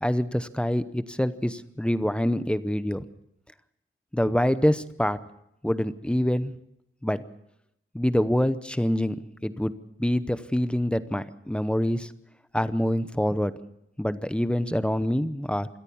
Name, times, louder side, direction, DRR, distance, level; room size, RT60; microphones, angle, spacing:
voice 1, 0.0-3.0 4.1-5.2 5.6-6.5 7.0-7.2 7.9-9.2 9.4-9.7 10.0-12.1 12.5-13.5 14.0-15.7, equal, 5° left, 13 dB, 0.8 m, -25 dB
26.5 x 14.0 x 7.1 m, 0.79 s
wide cardioid pair, 165°, 21 cm